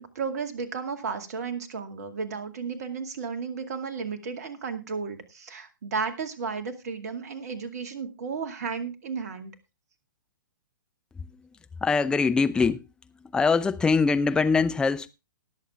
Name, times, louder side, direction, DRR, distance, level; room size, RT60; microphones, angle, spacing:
voice 1, 0.0-9.5, right 5 dB, 50° right, 2.2 m, -33 dB
voice 2, 11.8-12.8 13.3-15.1, left 4 dB, 5° left, 0.6 m, -23 dB
19.5 x 7.4 x 3.5 m
figure-of-eight pair, 120°, 11 cm